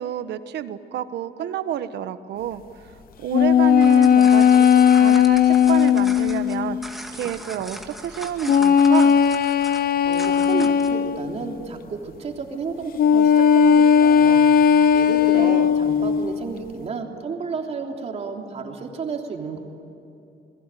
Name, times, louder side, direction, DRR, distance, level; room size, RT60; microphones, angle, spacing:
voice 1, 0.0-2.6 3.2-9.2 15.3-15.7, right 10 dB, 75° right, 11 dB, 1.3 m, -29 dB
sound 1, 3.3-6.8 8.5-11.4 13.0-16.3, left 8 dB, 55° left, 0.9 m, -16 dB
sound 2, 3.6-11.0, right 1 dB, ahead, 2.1 m, -39 dB
voice 2, 10.0-14.4 14.9-19.6, right 5 dB, 40° right, 2 dB, 3.3 m, -32 dB
29.5 x 21.5 x 9.2 m, 2.8 s
cardioid pair, 170°, 18 cm